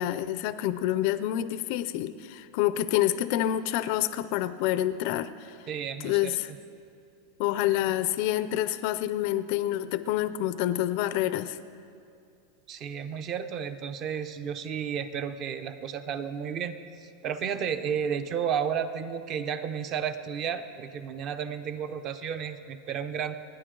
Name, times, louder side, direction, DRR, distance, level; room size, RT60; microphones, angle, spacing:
voice 1, 0.0-5.6 6.0-6.5 7.4-11.6, left 13 dB, 40° left, 14 dB, 0.4 m, -27 dB
voice 2, 5.7-6.6 12.7-23.4, right 7 dB, 25° right, 11 dB, 0.6 m, -32 dB
29.0 x 10.0 x 3.8 m, 2.5 s
supercardioid pair, 180°, 0 cm